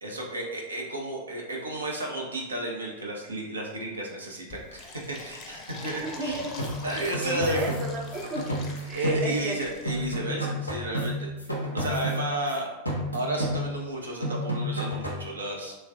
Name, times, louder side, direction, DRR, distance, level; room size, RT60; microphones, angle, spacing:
voice 1, 0.0-6.5 6.8-7.7 8.9-12.7 13.1-15.8, right 1 dB, 75° right, -2 dB, 0.5 m, -33 dB
Fill (with liquid), 4.5-10.2, left 3 dB, 30° left, 0.5 m, -44 dB
voice 2, 5.8-6.7 7.2-9.5, right 2 dB, 30° right, -1 dB, 0.5 m, -33 dB
sound 1, 6.6-9.6 9.9-12.6 12.9-13.9 14.2-15.3, equal, 85° left, 0.5 m, -31 dB
3.1 x 2.3 x 2.4 m, 1.0 s
figure-of-eight pair, 90°, 0 cm